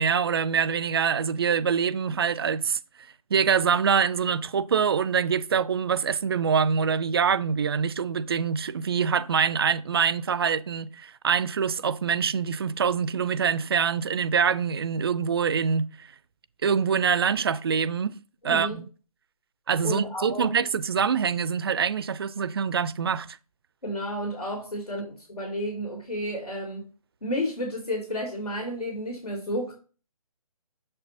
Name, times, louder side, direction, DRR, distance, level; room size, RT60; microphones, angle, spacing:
voice 1, 0.0-2.8 3.3-16.1 16.6-18.2 18.4-18.8 19.7-23.4, right 6 dB, 40° right, 0.4 m, -25 dB
voice 2, 18.4-18.8 19.8-20.5 23.8-26.8 27.2-29.7, equal, 80° left, 3.3 m, -31 dB
7.2 x 5.3 x 3.0 m
figure-of-eight pair, 145°, 19 cm